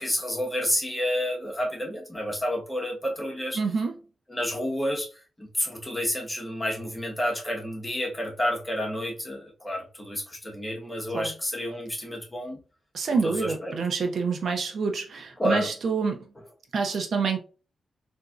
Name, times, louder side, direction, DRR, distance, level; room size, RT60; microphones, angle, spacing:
voice 1, 0.0-3.6 4.3-5.1 5.4-12.6 13.2-13.7 15.4-15.7, equal, 15° left, 1.0 m, -30 dB
voice 2, 3.6-3.9 11.1-11.3 12.9-16.3 16.7-17.4, right 5 dB, 70° right, 0.6 m, -27 dB
3.9 x 2.6 x 2.3 m
wide cardioid pair, 115°, 0 cm